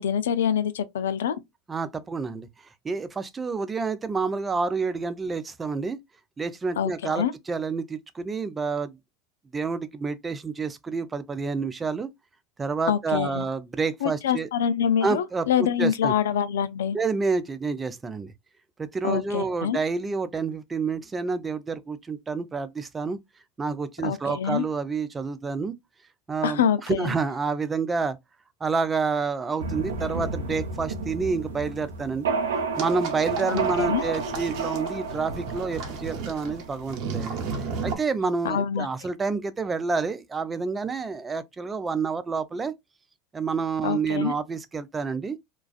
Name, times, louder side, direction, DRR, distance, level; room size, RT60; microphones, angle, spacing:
voice 1, 0.0-1.4 6.8-7.3 12.9-13.4 14.0-17.0 19.0-19.8 24.0-24.7 26.4-27.1 33.5-34.0 38.4-38.9 43.8-44.3, left 8 dB, 85° left, 0.3 m, -25 dB
voice 2, 1.7-2.5 2.8-6.0 6.4-9.0 9.5-12.1 12.6-14.5 15.0-16.1 16.9-18.3 18.8-23.2 23.6-25.7 26.3-28.2 28.6-32.3 32.8-37.4 37.8-42.7 43.3-45.4, right 4 dB, 20° right, 0.4 m, -28 dB
sound 1, 29.6-37.3, right 4 dB, 85° right, 0.6 m, -31 dB
sound 2, 32.7-37.9, right 5 dB, 55° right, 0.8 m, -34 dB
2.3 x 2.3 x 2.3 m
hypercardioid pair, 100°, 0 cm